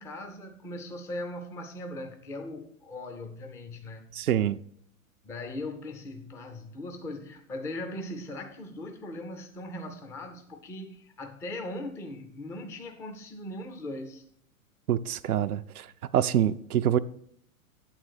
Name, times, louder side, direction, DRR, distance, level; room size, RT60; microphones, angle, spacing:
voice 1, 0.0-4.1 5.2-14.2, left 1 dB, 5° left, 0.4 m, -39 dB
voice 2, 4.1-4.6 14.9-15.9 16.1-17.0, right 10 dB, 80° right, 0.5 m, -25 dB
8.8 x 3.9 x 6.3 m
hypercardioid pair, 105°, 43 cm